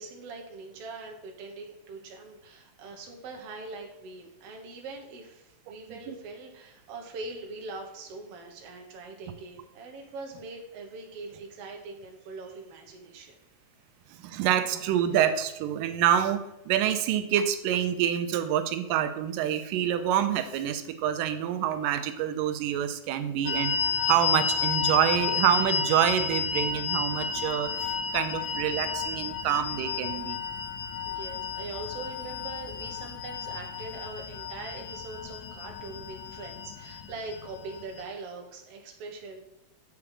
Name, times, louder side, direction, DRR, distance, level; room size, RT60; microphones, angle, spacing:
voice 1, 0.0-13.4 31.0-39.4, right 3 dB, 60° right, 2 dB, 1.8 m, -42 dB
voice 2, 14.1-16.4 16.7-23.8 24.1-30.4, right 10 dB, 90° right, 9 dB, 2.3 m, -27 dB
sound 1, 23.5-38.0, left 6 dB, 80° left, 2.0 m, -32 dB
7.1 x 6.0 x 4.8 m, 0.90 s
omnidirectional pair, 3.8 m